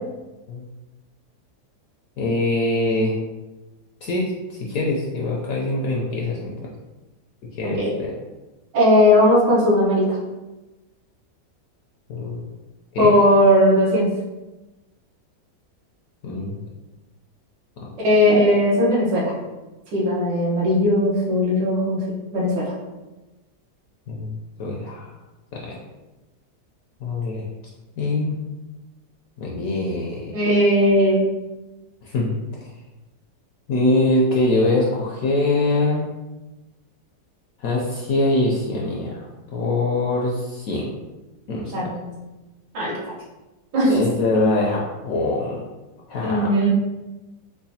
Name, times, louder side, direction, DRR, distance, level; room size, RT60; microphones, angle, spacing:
voice 1, 2.2-3.1 4.0-6.5 7.5-8.1 12.1-12.5 12.9-13.1 16.2-16.6 17.8-17.9 24.1-25.1 25.5-25.8 27.0-27.4 28.0-28.4 29.4-30.3 32.0-32.3 32.6-32.7 33.7-36.1 37.6-39.2 39.5-40.9 41.5-41.9 43.9-45.6 46.1-46.5, left 2 dB, 70° left, -3 dB, 0.8 m, -23 dB
voice 2, 7.6-7.9 8.7-10.2 13.0-14.1 18.0-19.3 19.9-22.0 22.3-22.7 30.3-31.3 41.7-42.1 42.7-42.9 43.7-43.9 46.2-46.7, left 1 dB, 80° right, -6 dB, 1.7 m, -18 dB
4.8 x 2.2 x 2.7 m, 1.1 s
omnidirectional pair, 1.9 m